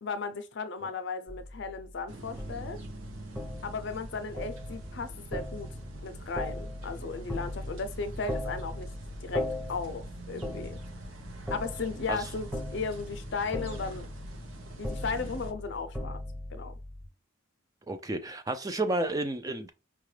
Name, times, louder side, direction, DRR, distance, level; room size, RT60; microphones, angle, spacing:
voice 1, 0.0-2.8 3.6-5.7 6.0-8.9 9.2-10.8 11.5-14.1 14.8-16.2 16.5-16.7, left 4 dB, 60° left, 0.5 m, -36 dB
sound 1, 1.3-17.1, left 1 dB, ahead, 0.8 m, -39 dB
sound 2, 2.1-15.5, right 1 dB, 80° right, 0.7 m, -45 dB
voice 2, 17.9-19.7, right 2 dB, 20° right, 0.3 m, -31 dB
4.8 x 2.3 x 3.2 m
head